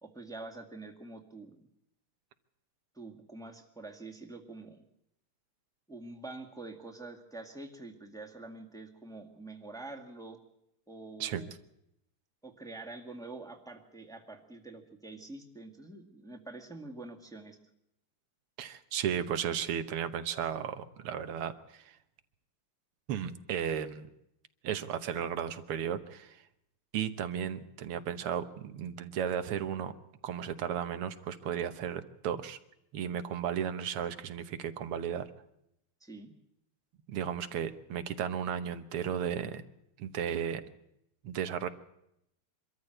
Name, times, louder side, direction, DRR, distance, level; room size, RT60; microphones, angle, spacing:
voice 1, 0.0-1.7 2.9-4.8 5.9-10.4 10.9-11.5 12.4-17.6 36.0-36.3, right 2 dB, ahead, 2 dB, 1.8 m, -46 dB
voice 2, 18.6-22.0 23.1-24.1 24.6-26.4 26.9-29.9 30.2-32.6 32.9-35.3 37.1-39.7 40.0-40.6 41.2-41.7, right 8 dB, 85° right, 10 dB, 2.0 m, -34 dB
24.0 x 13.5 x 7.8 m, 0.81 s
omnidirectional pair, 2.4 m